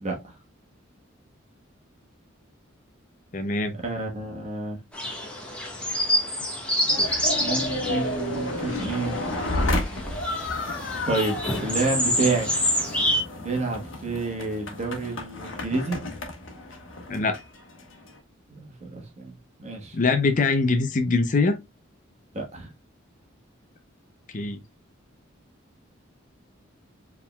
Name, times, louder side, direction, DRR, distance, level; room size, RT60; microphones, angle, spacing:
voice 1, 3.3-3.7 17.1-17.4 19.9-21.6 24.3-24.6, left 3 dB, 40° left, 0.5 m, -23 dB
voice 2, 3.8-4.8 7.3-9.2 11.1-12.5 13.4-16.0 18.5-19.3 19.6-19.9 22.3-22.7, right 3 dB, 35° right, 1.2 m, -29 dB
sound 1, 4.9-13.2, equal, 5° left, 1.2 m, -28 dB
sound 2, 6.9-18.2, left 2 dB, 70° left, 1.2 m, -32 dB
4.8 x 3.6 x 2.2 m
head